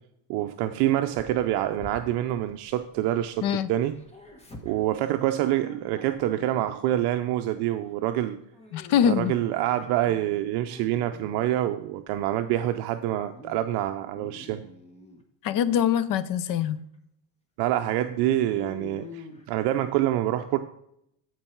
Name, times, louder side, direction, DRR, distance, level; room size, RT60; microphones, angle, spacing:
voice 1, 0.3-3.9 4.6-8.4 9.1-14.6 17.6-20.6, right 13 dB, 60° right, 8 dB, 0.6 m, -26 dB
Dog, 1.1-3.4 3.7-7.1 7.4-7.7 8.5-11.6 12.1-12.8 13.2-13.6 13.9-15.2 15.6-15.9 16.5-16.6 16.9-17.0 17.7-20.0, left 2 dB, 15° left, 1.2 m, -47 dB
voice 2, 8.7-9.3 15.4-16.8, left 9 dB, 45° left, 16 dB, 0.6 m, -23 dB
13.5 x 4.7 x 4.5 m, 0.74 s
cardioid pair, 145°, 45 cm